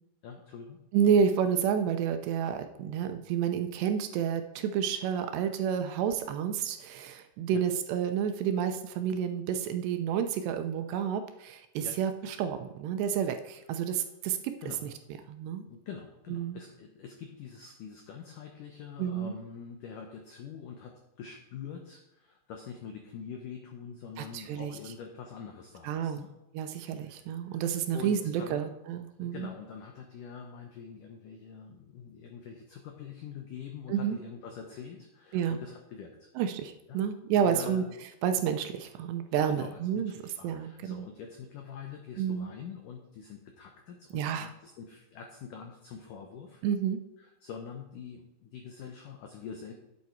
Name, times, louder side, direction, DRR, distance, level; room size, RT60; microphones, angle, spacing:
voice 1, 0.2-0.8 7.5-7.6 11.8-12.0 14.6-14.9 15.6-26.3 27.0-27.6 27.9-28.7 29.2-36.3 36.9-37.1 37.4-37.9 39.4-46.6 47.2-49.7, left 6 dB, 85° left, 3 dB, 1.8 m, -45 dB
voice 2, 0.9-14.6 15.3-15.7 16.3-16.6 19.0-19.3 24.2-24.7 25.8-26.2 26.5-29.5 33.9-34.2 35.3-35.6 36.4-37.8 38.2-40.1 40.4-41.1 42.2-42.5 44.1-44.5 46.6-47.0, right 8 dB, 80° right, 8 dB, 2.7 m, -30 dB
11.0 x 8.4 x 4.6 m, 0.93 s
omnidirectional pair, 5.2 m